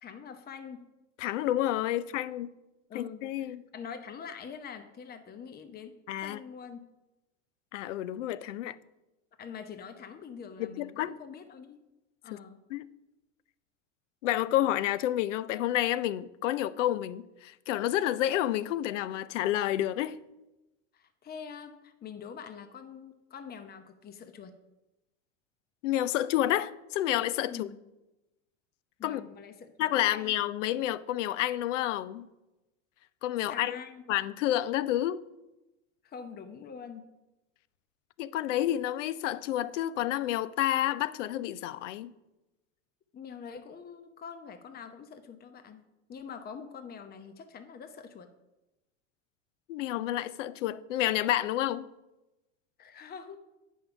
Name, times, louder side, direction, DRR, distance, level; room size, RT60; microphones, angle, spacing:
voice 1, 0.0-0.9 2.9-6.9 9.4-11.8 12.2-12.6 20.9-24.5 27.5-27.8 29.0-30.4 33.5-34.0 36.0-37.1 43.1-48.3 52.8-53.4, left 6 dB, 25° left, 0.8 m, -45 dB
voice 2, 1.2-2.5 2.9-3.6 6.1-6.4 7.7-8.7 10.8-11.1 12.3-12.4 12.7-12.9 14.2-20.2 25.8-27.7 29.0-29.2 29.8-32.3 33.2-33.8 34.1-35.2 38.2-42.1 49.7-51.9, left 13 dB, 80° left, 0.6 m, -29 dB
8.7 x 5.5 x 5.7 m
hypercardioid pair, 85°, 37 cm